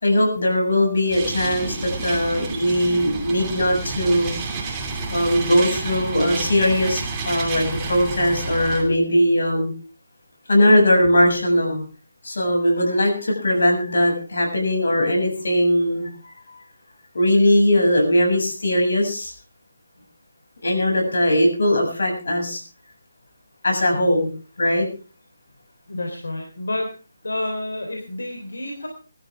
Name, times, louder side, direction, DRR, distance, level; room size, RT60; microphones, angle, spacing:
voice 1, 0.0-4.3 5.1-9.7 10.5-11.8 12.2-16.3 17.1-19.3 20.6-22.6 23.6-24.3 24.6-24.9, left 1 dB, 70° left, 2 dB, 7.0 m, -20 dB
Tractor digging, 1.1-8.8, right 4 dB, 15° right, 2.8 m, -30 dB
voice 2, 25.9-26.9 27.2-28.9, left 1 dB, 85° left, 2 dB, 3.6 m, -29 dB
21.0 x 13.0 x 3.6 m, 0.35 s
hypercardioid pair, 165°, 0 cm